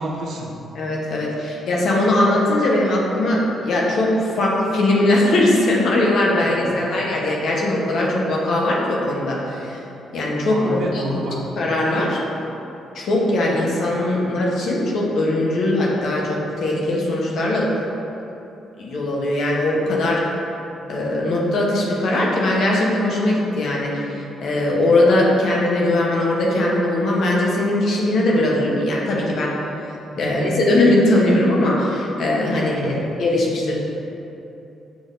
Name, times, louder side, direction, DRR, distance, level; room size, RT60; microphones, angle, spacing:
voice 1, 0.0-0.6 6.4-6.5 10.5-11.5 30.1-30.6 32.7-33.2, right 1 dB, 65° right, -1 dB, 0.7 m, -29 dB
voice 2, 0.7-9.8 10.1-11.0 11.6-12.2 12.9-17.8 18.8-20.2 20.9-29.5 30.2-33.8, left 1 dB, 70° left, -3 dB, 0.8 m, -20 dB
6.1 x 3.4 x 2.5 m, 2.9 s
cardioid pair, 90°, 0 cm